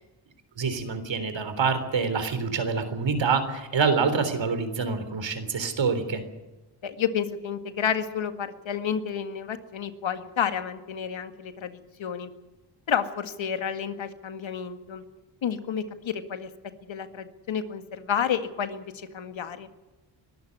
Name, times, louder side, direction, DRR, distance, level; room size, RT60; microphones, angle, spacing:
voice 1, 0.6-6.2, right 5 dB, 70° right, 10 dB, 3.7 m, -26 dB
voice 2, 6.8-12.3 12.9-15.0 15.4-16.5 16.8-19.7, left 8 dB, 75° left, 9 dB, 2.0 m, -30 dB
23.0 x 13.0 x 9.6 m, 1.1 s
cardioid pair, 75°, 47 cm